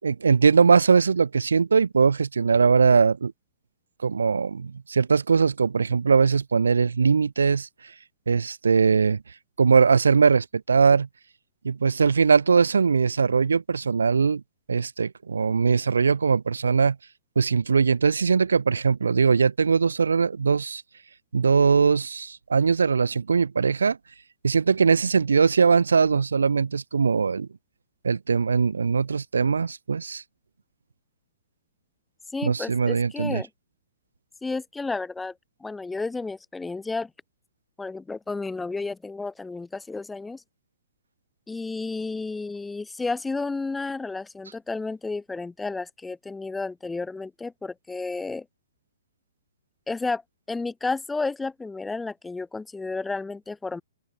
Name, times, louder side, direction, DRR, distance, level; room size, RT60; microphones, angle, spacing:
voice 1, 0.0-3.3 4.0-7.7 8.3-9.2 9.6-11.1 11.6-14.4 14.7-17.0 17.4-20.8 21.3-24.0 24.4-27.5 28.0-30.2 32.4-33.4, right 5 dB, 85° right, 6.1 m, -21 dB
voice 2, 32.3-33.5 34.4-35.3 35.6-37.1 37.8-40.4 41.5-48.5 49.9-50.2 50.5-53.8, left 3 dB, 10° left, 3.6 m, -32 dB
open air
hypercardioid pair, 130°, 0 cm